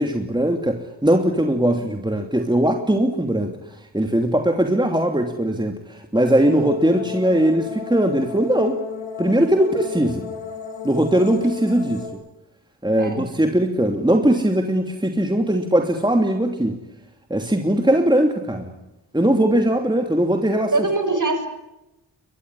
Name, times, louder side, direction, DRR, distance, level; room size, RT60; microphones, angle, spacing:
voice 1, 0.0-3.6 3.9-8.8 9.2-10.2 10.8-12.0 12.8-16.8 17.3-18.7 19.1-20.7, right 1 dB, 10° right, 4 dB, 2.8 m, -20 dB
voice 2, 1.6-2.0 13.0-13.3 20.7-21.5, right 3 dB, 40° right, 8 dB, 6.4 m, -23 dB
sound 1, 6.1-12.1, left 6 dB, 70° left, 5.5 m, -34 dB
22.5 x 21.5 x 10.0 m, 0.93 s
cardioid pair, 45°, 48 cm